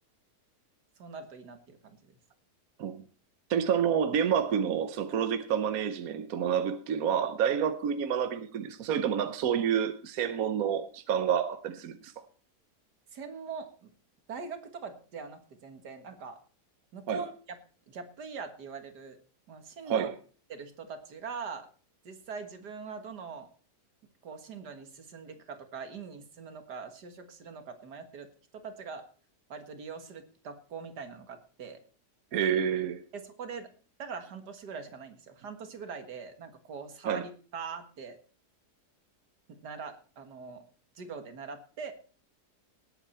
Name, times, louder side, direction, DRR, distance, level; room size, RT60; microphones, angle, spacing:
voice 1, 1.0-2.0 13.1-13.9 14.3-16.4 16.9-17.3 17.9-19.2 19.5-20.1 20.5-21.7 22.0-23.5 24.2-28.3 28.6-29.0 29.5-31.8 33.1-33.7 34.0-38.2 39.5-40.6 41.0-41.9, right 5 dB, 80° right, 2.2 m, -42 dB
voice 2, 3.5-12.1 17.1-17.2 19.9-20.1 32.3-33.0 37.0-37.2, right 8 dB, 65° right, 1.3 m, -28 dB
18.5 x 8.2 x 4.3 m
omnidirectional pair, 1.7 m